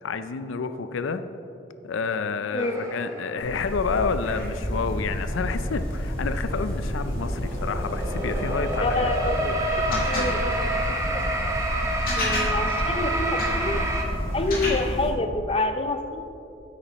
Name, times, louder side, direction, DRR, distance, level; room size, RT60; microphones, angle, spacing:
voice 1, 0.0-1.2 1.8-10.4 12.2-12.5, left 5 dB, 90° left, 11 dB, 0.5 m, -30 dB
voice 2, 2.5-2.8 8.8-9.5 10.1-10.7 11.1-11.2 12.2-13.8 14.3-16.3, left 2 dB, 30° left, 7 dB, 0.5 m, -27 dB
sound 1, 2.6-3.7 4.6-4.7 6.2-14.0, right 1 dB, 15° right, 0.7 m, -29 dB
sound 2, 3.4-15.1, equal, 45° left, 2.0 m, -29 dB
10.0 x 8.5 x 3.0 m, 2.7 s
head